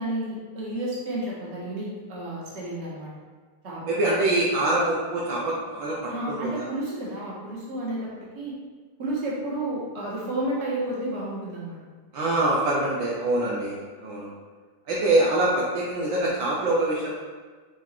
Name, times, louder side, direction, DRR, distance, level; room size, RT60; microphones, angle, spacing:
voice 1, 0.0-3.1 3.6-4.0 6.1-8.5 9.0-11.8, right 1 dB, 35° right, -6 dB, 1.6 m, -31 dB
voice 2, 3.9-6.6 12.1-14.3 14.9-17.1, right 2 dB, 65° right, -5 dB, 1.5 m, -24 dB
6.1 x 3.7 x 4.5 m, 1.5 s
omnidirectional pair, 2.4 m